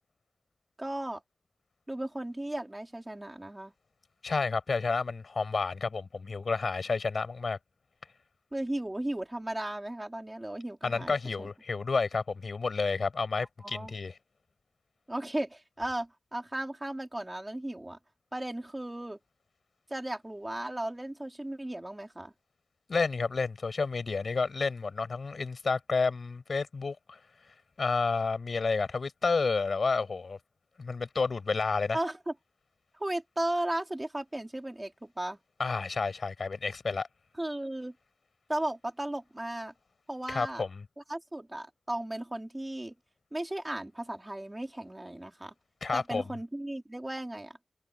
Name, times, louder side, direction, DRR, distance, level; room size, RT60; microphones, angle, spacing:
voice 1, 0.8-1.2 1.9-3.7 8.5-11.5 13.6-13.9 15.1-18.0 18.3-19.2 19.9-22.3 31.9-32.3 33.0-35.4 37.4-37.9 38.5-39.7 40.1-40.6 41.1-42.9 43.3-45.5 45.9-47.6, right 1 dB, 15° right, 4.5 m, -35 dB
voice 2, 4.2-7.6 10.8-14.1 22.9-27.2 27.8-30.4 30.8-32.0 35.6-37.1 40.3-40.8 45.8-46.2, left 4 dB, 65° left, 6.8 m, -30 dB
wide cardioid pair, 80°, 0 cm